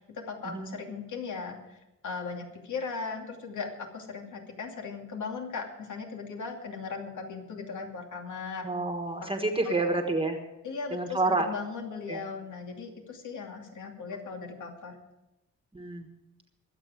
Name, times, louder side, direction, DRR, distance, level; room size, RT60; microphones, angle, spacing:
voice 1, 0.0-1.8 2.0-8.7 9.6-9.9 10.6-15.0, left 4 dB, 75° left, 2 dB, 2.7 m, -38 dB
voice 2, 8.6-10.4 10.9-11.5 12.1-12.2 15.7-16.1, right 2 dB, 20° right, 4 dB, 1.4 m, -29 dB
23.0 x 8.1 x 5.0 m, 0.94 s
wide cardioid pair, 150°, 30 cm